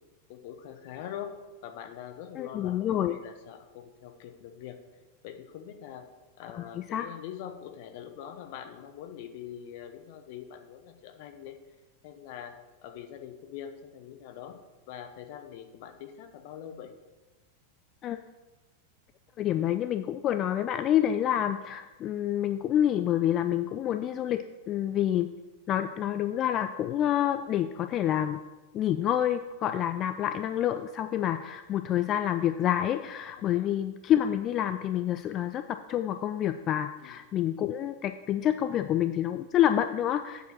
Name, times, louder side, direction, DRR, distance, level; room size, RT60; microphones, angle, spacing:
voice 1, 0.3-1.3 1.6-4.8 5.2-6.1 6.4-11.6 12.0-14.6 14.9-16.9 33.4-33.7 37.0-37.2, left 9 dB, 50° left, 7 dB, 0.8 m, -43 dB
voice 2, 2.4-3.2 6.4-7.1 18.0-18.2 19.4-25.3 25.7-28.4 28.7-40.5, left 11 dB, 30° left, 9 dB, 0.3 m, -28 dB
8.1 x 4.6 x 6.0 m, 1.2 s
figure-of-eight pair, 90°, 0 cm